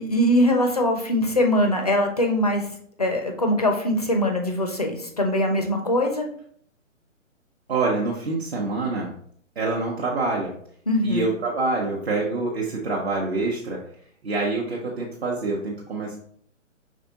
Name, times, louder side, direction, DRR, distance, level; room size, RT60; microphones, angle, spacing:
voice 1, 0.0-2.7 3.0-6.3 10.9-11.3, left 1 dB, 30° left, 3 dB, 0.4 m, -22 dB
voice 2, 7.7-9.1 9.6-10.6 11.0-13.9 14.2-16.2, right 3 dB, 50° right, -3 dB, 0.9 m, -26 dB
5.0 x 3.6 x 2.8 m, 0.62 s
figure-of-eight pair, 135°, 39 cm